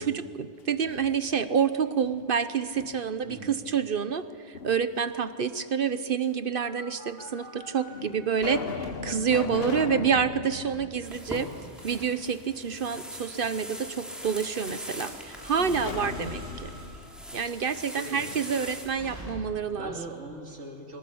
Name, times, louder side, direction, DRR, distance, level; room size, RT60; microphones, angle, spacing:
voice 1, 0.0-11.5 11.8-16.7 17.3-19.9, right 6 dB, 55° right, 12 dB, 1.0 m, -28 dB
sound 1, 0.6-1.6 2.0-3.3 4.5-5.3 6.2-6.3 7.2-7.3 7.9-12.0 12.3-12.4 15.7-18.5, left 5 dB, 60° left, 1.1 m, -39 dB
sound 2, 6.1-7.9 8.4-9.0 9.5-9.7 10.2-10.4 10.7-19.8, right 1 dB, 20° right, 4.7 m, -46 dB
voice 2, 10.5-10.8 15.6-16.0 17.9-18.7 19.7-21.0, right 2 dB, 85° right, 1 dB, 3.4 m, -41 dB
sound 3, 11.0-18.9, equal, ahead, 3.2 m, -42 dB
22.0 x 21.0 x 8.5 m, 2.4 s
omnidirectional pair, 1.2 m